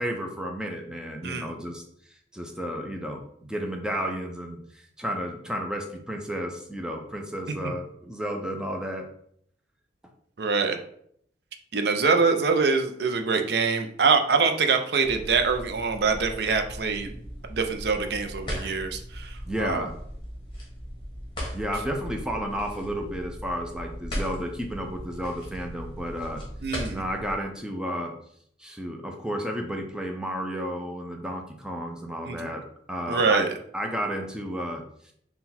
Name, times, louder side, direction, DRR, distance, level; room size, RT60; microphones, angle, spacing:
voice 1, 0.0-9.1 19.4-19.9 21.5-26.4 26.9-28.1 28.6-33.4 33.7-35.1, equal, 5° right, 2 dB, 0.4 m, -32 dB
voice 2, 1.2-1.6 7.6-7.7 10.4-10.8 11.7-17.1 17.5-19.8 26.6-27.0 32.3-32.5 33.1-33.5, right 4 dB, 60° right, 6 dB, 0.5 m, -24 dB
sound 1, 15.0-27.3, equal, 25° left, 1.2 m, -38 dB
3.9 x 2.2 x 4.1 m, 0.67 s
head